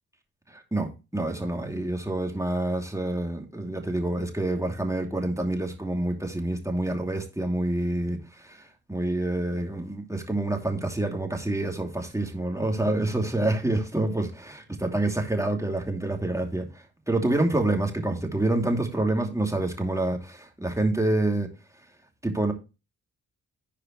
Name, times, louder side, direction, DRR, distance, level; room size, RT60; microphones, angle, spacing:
voice 1, 0.5-21.5 22.2-22.5, right 2 dB, 10° right, 2.7 m, -27 dB
15.0 x 5.0 x 3.1 m
hypercardioid pair, 40°, 37 cm